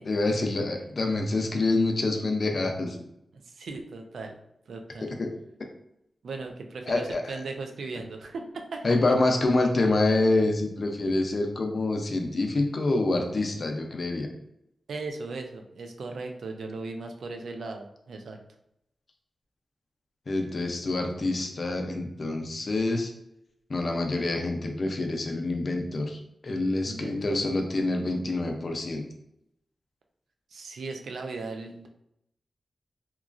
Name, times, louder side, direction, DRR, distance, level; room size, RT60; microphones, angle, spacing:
voice 1, 0.1-3.0 5.2-5.3 6.9-7.3 8.8-14.3 20.3-23.1 23.7-29.0, left 2 dB, 50° left, 3 dB, 0.5 m, -26 dB
voice 2, 3.4-4.3 4.7-5.1 6.2-8.9 14.9-18.4 26.8-27.5 30.5-31.9, right 3 dB, 90° right, 4 dB, 0.3 m, -37 dB
2.9 x 2.3 x 2.4 m, 0.78 s
wide cardioid pair, 90°, 0 cm